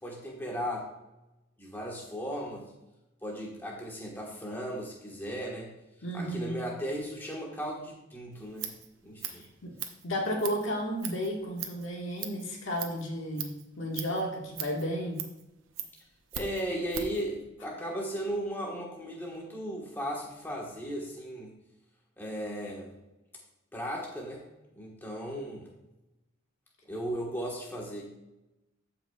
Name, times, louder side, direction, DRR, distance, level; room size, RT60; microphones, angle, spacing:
voice 1, 0.0-0.9 1.6-2.7 3.2-5.7 6.1-8.7 9.0-9.4 16.3-21.5 22.2-22.9 23.7-24.5 24.7-25.7 26.8-28.1, equal, 10° left, -2 dB, 1.4 m, -36 dB
voice 2, 6.0-6.6 9.6-9.7 10.0-15.2, equal, 65° left, 0 dB, 1.6 m, -33 dB
Scissors, 8.3-17.2, right 9 dB, 70° right, 0.9 m, -41 dB
14.0 x 5.7 x 2.4 m, 0.96 s
head